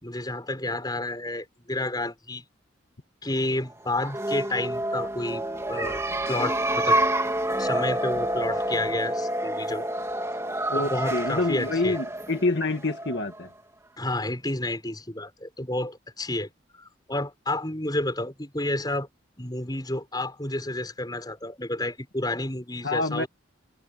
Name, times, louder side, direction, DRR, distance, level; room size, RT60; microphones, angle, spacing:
voice 1, 0.0-2.4 3.2-6.0 6.3-7.0 7.6-9.9 10.7-12.0 14.0-19.1 19.4-23.3, left 1 dB, 20° left, 6.4 m, -30 dB
sound 1, 3.9-13.4, right 1 dB, 15° right, 3.0 m, -28 dB
voice 2, 10.7-13.5 22.8-23.3, left 2 dB, 60° left, 2.0 m, -27 dB
head